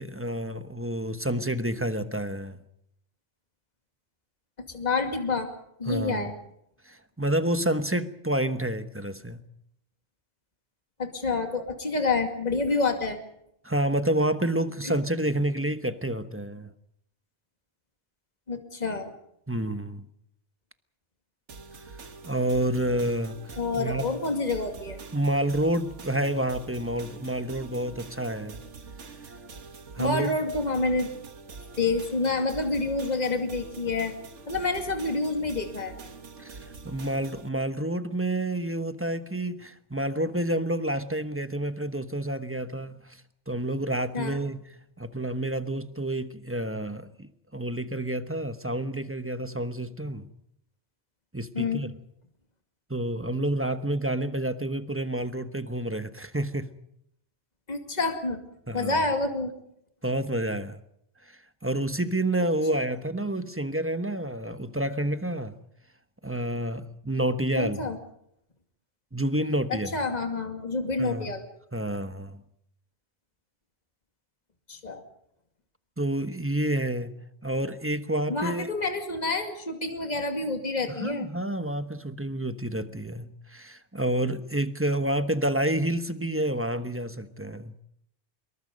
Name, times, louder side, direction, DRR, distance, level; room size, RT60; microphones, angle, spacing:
voice 1, 0.0-2.6 5.9-6.3 6.9-9.4 13.6-16.7 19.5-20.1 22.2-24.1 25.1-28.6 29.9-30.3 36.4-43.2 43.5-44.6 45.0-50.3 51.3-51.9 52.9-56.7 58.7-59.0 60.0-60.8 61.6-65.5 66.2-67.8 69.1-69.9 71.0-71.3 71.7-72.4 76.0-77.1 77.4-78.7 80.9-87.7, right 1 dB, 10° right, 1.1 m, -29 dB
voice 2, 4.7-5.5 5.8-6.3 11.0-13.2 14.8-15.0 18.5-19.1 23.6-25.0 30.0-31.1 31.8-34.1 34.5-36.0 44.1-44.4 51.5-51.8 57.7-58.4 58.7-59.5 67.6-68.0 69.7-71.4 74.7-75.0 78.3-81.3, left 3 dB, 35° left, 2.5 m, -28 dB
sound 1, 21.5-37.5, right 4 dB, 80° right, 1.8 m, -45 dB
26.0 x 22.5 x 5.3 m
omnidirectional pair, 1.2 m